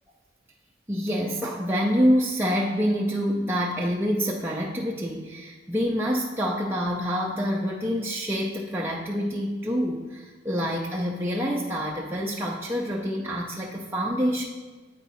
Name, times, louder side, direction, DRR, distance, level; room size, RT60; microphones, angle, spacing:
voice 1, 0.9-14.4, equal, 10° right, -3 dB, 0.4 m, -26 dB
8.1 x 4.6 x 4.1 m, 1.4 s
head